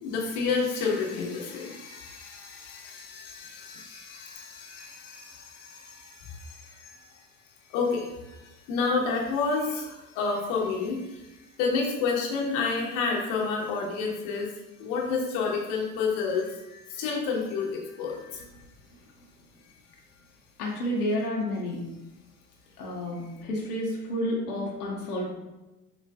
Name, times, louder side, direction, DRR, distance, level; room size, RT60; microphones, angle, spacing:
voice 1, 0.0-7.0 7.7-14.5 14.8-18.4, left 4 dB, 50° left, -1 dB, 1.0 m, -30 dB
voice 2, 18.3-18.7 20.6-21.9 22.8-25.4, left 1 dB, 75° left, -3 dB, 1.0 m, -31 dB
6.6 x 2.4 x 2.3 m, 1.0 s
figure-of-eight pair, 70°, 45 cm